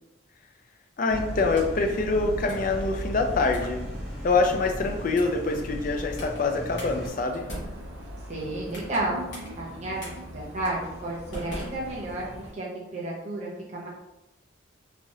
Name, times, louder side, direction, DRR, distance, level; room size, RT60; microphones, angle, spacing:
voice 1, 1.0-3.8 4.2-7.4, left 3 dB, 40° left, 4 dB, 0.3 m, -25 dB
sound 1, 1.1-7.1, equal, 10° left, 0.8 m, -36 dB
sound 2, 1.3-1.9 2.5-2.8 3.5-3.8 4.3-4.6 5.1-5.5 6.2-6.4 6.8-6.9 7.3-9.0 9.3-9.5 10.0-10.1 10.6-10.8 11.3-12.4, equal, 60° left, 1.0 m, -41 dB
sound 3, 6.8-12.5, equal, 75° right, 0.6 m, -42 dB
voice 2, 8.3-9.2 9.6-12.3 12.5-13.9, right 2 dB, 35° right, -5 dB, 0.7 m, -32 dB
3.2 x 2.4 x 2.6 m, 0.95 s
head